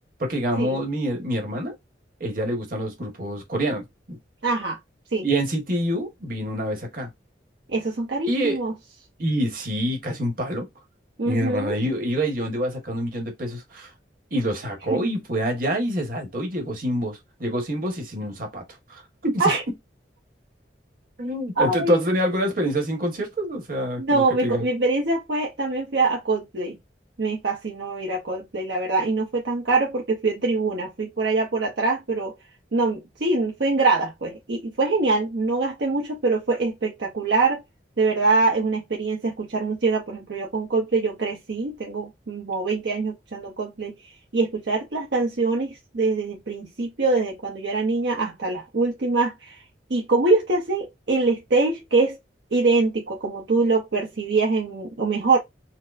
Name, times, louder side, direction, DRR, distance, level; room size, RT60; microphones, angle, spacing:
voice 1, 0.2-1.7 2.2-4.2 5.2-7.1 8.3-8.6 9.2-10.7 11.2-13.9 14.3-18.6 18.9-19.5 21.2-24.7, equal, 55° right, 1.3 m, -26 dB
voice 2, 4.4-4.8 5.1-5.2 7.7-8.7 11.2-11.8 14.9-15.0 19.4-19.6 21.6-22.1 24.0-26.8 27.2-32.3 32.7-37.6 38.0-43.9 44.3-49.6 49.9-52.2 52.5-55.4, right 3 dB, 70° right, 0.7 m, -24 dB
4.3 x 2.1 x 2.5 m
head